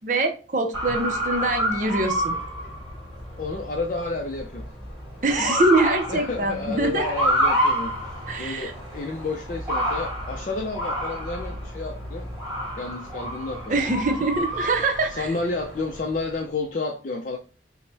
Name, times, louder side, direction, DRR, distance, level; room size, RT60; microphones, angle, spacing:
voice 1, 0.0-2.3 5.2-7.0 8.3-8.7 13.7-15.3, right 2 dB, 45° right, 0.6 m, -24 dB
Motor vehicle (road) / Siren, 0.7-16.3, equal, ahead, 1.9 m, -29 dB
voice 2, 3.4-4.7 6.1-12.3 12.8-14.0 14.6-14.7 15.1-17.4, left 3 dB, 45° left, 0.5 m, -31 dB
5.8 x 2.1 x 3.3 m
head